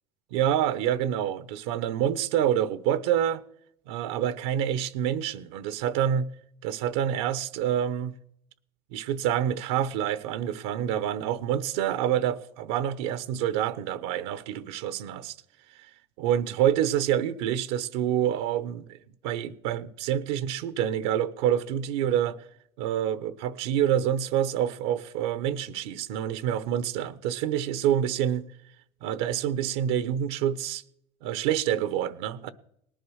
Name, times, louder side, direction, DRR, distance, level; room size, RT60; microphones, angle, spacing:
voice 1, 0.3-3.4 3.9-6.3 6.6-8.1 8.9-15.3 16.2-19.0 19.2-22.4 22.8-28.5 29.0-30.8 31.2-32.5, right 10 dB, 85° right, 1.0 m, -27 dB
19.0 x 10.5 x 6.4 m
supercardioid pair, 95°, 13 cm